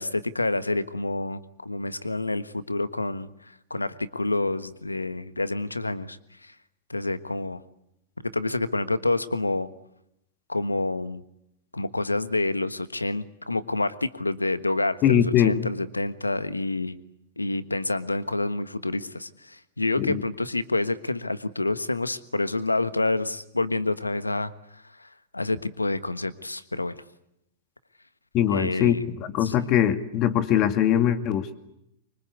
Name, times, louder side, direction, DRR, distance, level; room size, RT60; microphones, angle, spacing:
voice 1, 0.0-3.3 3.7-6.2 6.4-6.5 6.9-7.6 8.2-9.7 10.5-11.2 11.7-17.0 17.4-24.5 25.0-25.1 25.3-27.0 28.5-29.0 29.4-29.7, left 2 dB, 90° left, 13 dB, 1.3 m, -28 dB
voice 2, 15.0-15.7 20.0-20.2 28.3-31.6, left 10 dB, 40° left, 8 dB, 2.4 m, -22 dB
25.0 x 24.0 x 8.4 m, 0.82 s
figure-of-eight pair, 100°, 0 cm